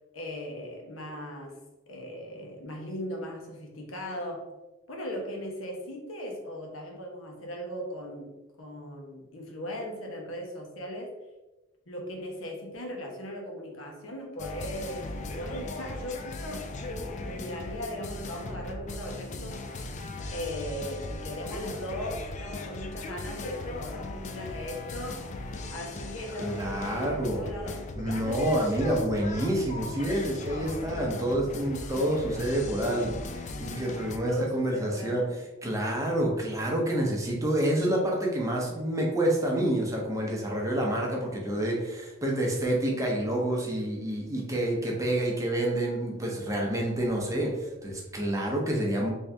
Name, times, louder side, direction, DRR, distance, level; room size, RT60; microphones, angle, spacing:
voice 1, 0.1-1.6 1.9-4.5 4.9-11.1 11.9-19.7 20.3-25.3 25.7-28.5 34.3-35.3, equal, 85° left, 0 dB, 0.9 m, -38 dB
sound 1, 14.4-34.2, left 2 dB, 35° left, 0.3 m, -38 dB
voice 2, 26.4-27.5 28.0-33.1 33.6-35.2 35.6-49.1, right 1 dB, 15° right, -1 dB, 0.7 m, -28 dB
3.6 x 2.7 x 3.3 m, 1.1 s
head